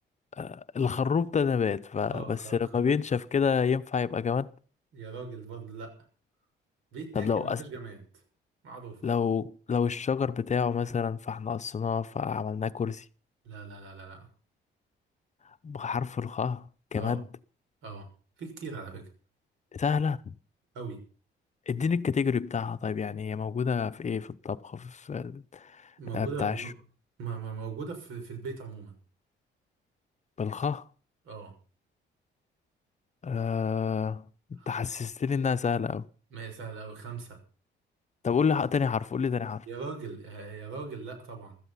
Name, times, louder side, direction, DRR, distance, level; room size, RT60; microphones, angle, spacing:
voice 1, 0.3-4.5 7.1-7.6 9.0-13.1 15.6-17.2 19.7-20.3 21.7-26.7 30.4-30.8 33.2-34.2 34.5-36.1 38.2-39.6, left 6 dB, 35° left, 0.8 m, -29 dB
voice 2, 2.1-2.9 4.9-5.9 6.9-8.2 8.6-9.0 13.4-14.3 16.9-17.2 17.8-18.1 18.4-19.1 20.7-21.0 26.0-26.7 27.2-28.9 31.2-31.5 34.6-34.7 36.3-37.4 39.7-41.6, right 5 dB, 85° right, 6.2 m, -40 dB
15.5 x 13.5 x 5.7 m
cardioid pair, 90°, 20 cm